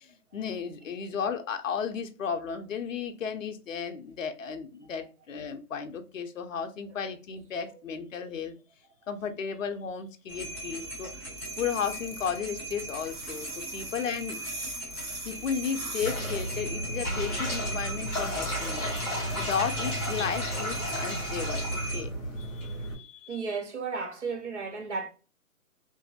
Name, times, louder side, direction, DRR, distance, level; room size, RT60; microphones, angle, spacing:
voice 1, 0.0-8.6 9.1-11.3 11.6-14.4 15.2-18.9 19.3-23.4, left 7 dB, 55° left, 0.5 m, -34 dB
sound 1, 10.3-22.0, right 1 dB, 10° right, 1.1 m, -39 dB
sound 2, 11.4-16.6, right 3 dB, 70° right, 1.0 m, -41 dB
sound 3, 16.0-22.9, equal, 25° left, 1.3 m, -33 dB
voice 2, 23.3-25.1, right 4 dB, 50° right, 0.6 m, -34 dB
2.6 x 2.5 x 2.2 m
hypercardioid pair, 170°, 46 cm